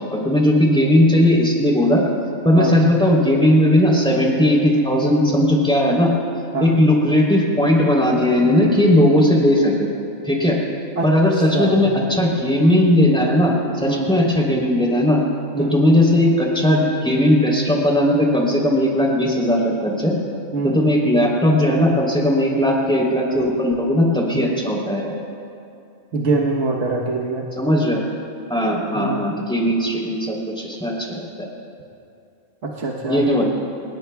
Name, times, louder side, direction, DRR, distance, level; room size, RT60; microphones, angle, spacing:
voice 1, 0.1-2.0 2.4-6.1 6.6-9.9 10.2-10.6 11.0-15.2 15.6-20.1 20.6-25.1 27.6-28.0 28.5-31.5 33.1-33.4, left 1 dB, 5° left, -3 dB, 3.2 m, -17 dB
voice 2, 11.4-11.8 13.9-14.1 15.5-15.7 20.5-20.8 26.1-27.5 28.9-29.3 32.6-33.2, right 3 dB, 60° right, -2 dB, 1.4 m, -24 dB
28.5 x 19.0 x 2.3 m, 2.5 s
omnidirectional pair, 1.5 m